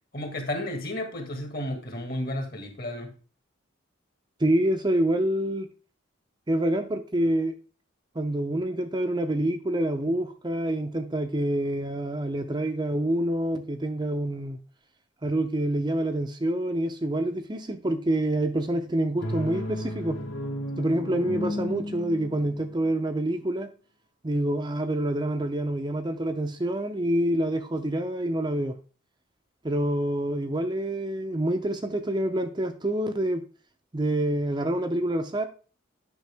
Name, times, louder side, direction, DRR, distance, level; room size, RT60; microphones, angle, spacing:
voice 1, 0.1-3.1, left 1 dB, 45° left, 1.8 m, -32 dB
voice 2, 4.4-5.7 6.5-7.6 8.2-14.6 15.2-20.2 20.8-23.7 24.2-28.8 29.6-33.4 33.9-35.5, right 1 dB, 20° right, 0.5 m, -27 dB
sound 1, 19.2-22.9, equal, 80° left, 1.7 m, -34 dB
9.2 x 5.9 x 3.4 m
head